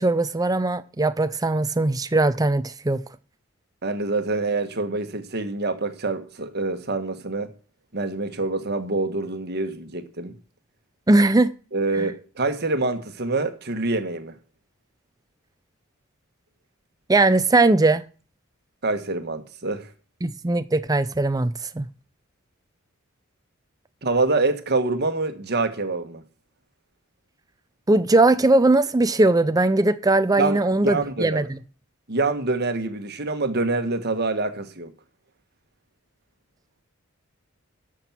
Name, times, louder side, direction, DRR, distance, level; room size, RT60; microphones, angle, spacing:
voice 1, 0.0-3.0 11.1-11.5 11.9-12.1 17.1-18.0 20.2-21.9 27.9-31.6, right 2 dB, 15° right, 0.5 m, -20 dB
voice 2, 3.8-7.5 7.9-10.3 11.7-14.3 18.8-19.9 24.0-26.2 30.4-31.5 32.1-34.9, right 3 dB, 50° right, 1.4 m, -26 dB
13.0 x 6.2 x 5.9 m
head